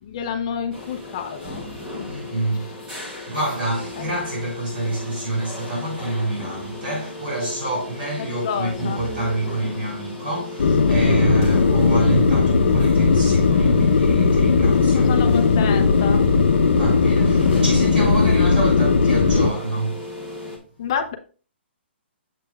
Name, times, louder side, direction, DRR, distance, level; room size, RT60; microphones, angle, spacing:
voice 1, 0.0-2.1 4.0-4.1 8.2-9.0 14.9-16.2 20.8-21.2, left 7 dB, 25° left, 0.7 m, -29 dB
sound 1, 0.7-20.6, left 1 dB, 10° right, 1.0 m, -35 dB
voice 2, 2.1-2.7 3.3-15.2 16.7-20.1, right 2 dB, 50° right, 3.9 m, -27 dB
sound 2, 10.6-19.5, left 4 dB, 65° left, 0.8 m, -17 dB
7.5 x 7.2 x 2.4 m
hypercardioid pair, 180°, 6 cm